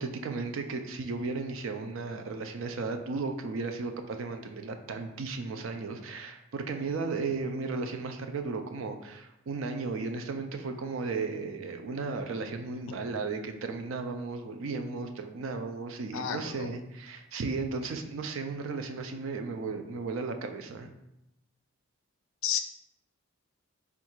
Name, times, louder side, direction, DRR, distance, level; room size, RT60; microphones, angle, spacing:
voice 1, 0.0-20.9, right 4 dB, 65° right, 6 dB, 0.4 m, -35 dB
voice 2, 16.1-16.7 22.4-22.6, left 9 dB, 70° left, 7 dB, 0.4 m, -31 dB
3.7 x 2.4 x 4.4 m, 0.87 s
head